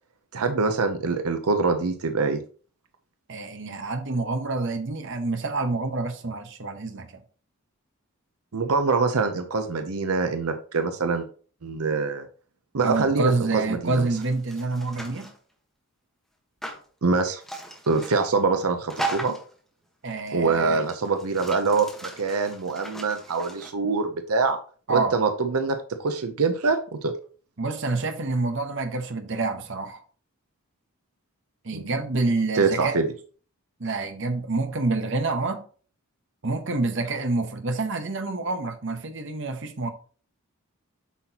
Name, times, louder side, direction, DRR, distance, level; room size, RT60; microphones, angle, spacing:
voice 1, 0.3-2.4 8.5-11.3 11.6-12.3 12.7-14.1 17.0-17.4 17.9-19.3 20.3-24.6 24.9-27.1 31.7-31.8 32.6-33.1, right 4 dB, 80° right, 0.7 m, -24 dB
voice 2, 3.3-7.2 12.8-15.3 20.0-20.8 24.9-25.2 27.6-30.0 31.6-33.0 33.8-35.6 36.4-39.9, right 3 dB, 55° right, 0.9 m, -27 dB
sound 1, 13.9-15.4 16.6-16.8 17.4-18.3 18.9-19.5 20.3-20.4 20.7-23.7, right 2 dB, ahead, 1.2 m, -37 dB
8.3 x 5.9 x 2.9 m
head